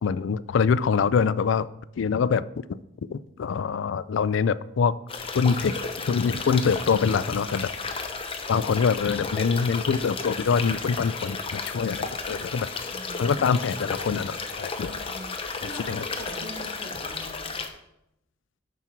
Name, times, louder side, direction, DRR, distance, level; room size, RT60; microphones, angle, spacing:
voice 1, 0.0-1.7 2.0-2.8 3.1-5.0 5.3-5.8 6.1-7.7 8.5-12.7 13.2-15.0 15.6-16.0, left 6 dB, 65° left, 17 dB, 0.3 m, -24 dB
sound 1, 5.1-17.7, left 4 dB, 25° left, 0.7 m, -33 dB
voice 2, 12.9-13.4 14.7-17.6, equal, 80° right, 0 dB, 2.1 m, -43 dB
9.1 x 6.0 x 4.5 m, 0.82 s
head